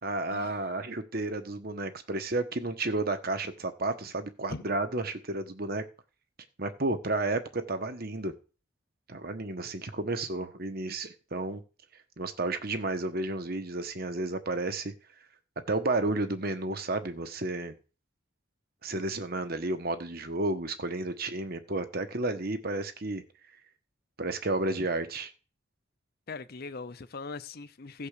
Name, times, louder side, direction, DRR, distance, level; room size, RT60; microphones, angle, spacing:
voice 1, 0.0-5.8 6.6-8.3 9.1-11.6 12.2-14.9 15.7-17.7 18.8-23.2 24.2-25.3, right 2 dB, 50° right, 1.4 m, -32 dB
voice 2, 26.3-28.1, left 4 dB, 50° left, 0.7 m, -40 dB
16.0 x 5.4 x 6.8 m
head